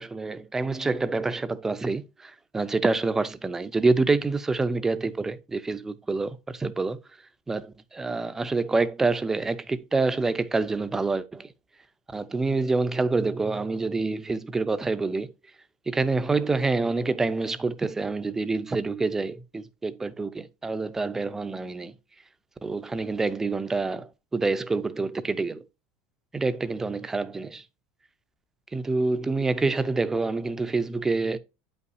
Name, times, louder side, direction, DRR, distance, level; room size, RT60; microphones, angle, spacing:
voice 1, 0.0-7.0 7.5-11.5 12.1-15.3 15.9-21.9 22.6-25.6 26.3-27.6 28.7-31.4, right 3 dB, 10° right, 0.5 m, -27 dB
8.9 x 5.5 x 2.6 m
cardioid pair, 155°, 4 cm